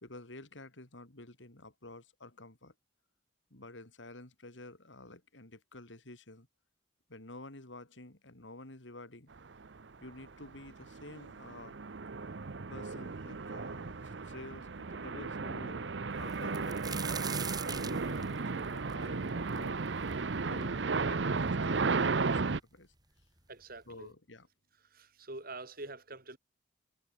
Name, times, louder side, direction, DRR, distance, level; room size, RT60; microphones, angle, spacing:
voice 1, 0.0-2.7 3.5-6.5 7.1-9.3 10.0-11.8 12.7-17.0 17.6-19.8 20.4-22.9 23.8-24.5, left 2 dB, 75° left, 3.3 m, -50 dB
sound 1, 9.6-9.8 10.3-22.6, right 4 dB, 65° right, 0.8 m, -34 dB
sound 2, 16.3-20.1 20.6-20.7 21.5-21.6 21.8-22.5 23.4-23.5 23.9-24.1, right 6 dB, 20° right, 3.8 m, -42 dB
voice 2, 23.5-24.1 24.9-26.4, right 2 dB, 50° right, 4.7 m, -45 dB
head